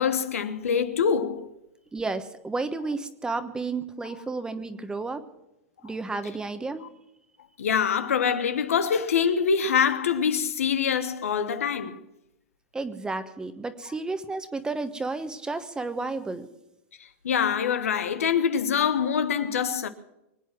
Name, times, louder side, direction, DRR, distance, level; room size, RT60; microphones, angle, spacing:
voice 1, 0.0-1.5 7.6-12.0 17.2-19.9, left 7 dB, 90° left, 1.2 m, -24 dB
voice 2, 1.9-5.2 5.8-6.8 12.7-16.5, right 3 dB, 10° right, 1.1 m, -32 dB
24.0 x 9.0 x 6.1 m
hypercardioid pair, 125°, 7 cm